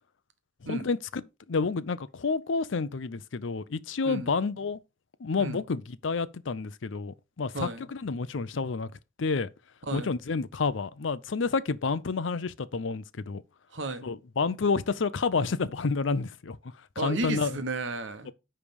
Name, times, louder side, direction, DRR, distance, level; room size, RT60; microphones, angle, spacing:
voice 1, 0.7-1.2 1.5-4.8 5.2-8.9 9.2-9.5 9.9-13.4 14.0-16.6 17.0-17.6, left 4 dB, 70° left, 0.6 m, -29 dB
voice 2, 9.8-10.1 13.7-14.0 17.0-18.3, right 2 dB, 65° right, 1.2 m, -33 dB
9.9 x 3.3 x 5.3 m
head